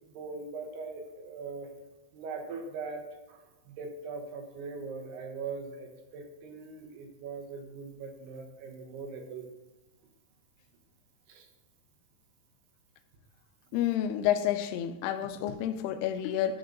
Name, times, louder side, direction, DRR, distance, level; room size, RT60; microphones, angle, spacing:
voice 1, 0.0-1.7 2.1-3.0 3.3-9.5 11.3-11.5, right 4 dB, 85° right, 3.3 m, -41 dB
voice 2, 13.7-16.6, left 10 dB, 90° left, 2.6 m, -29 dB
12.5 x 5.3 x 3.9 m
omnidirectional pair, 4.5 m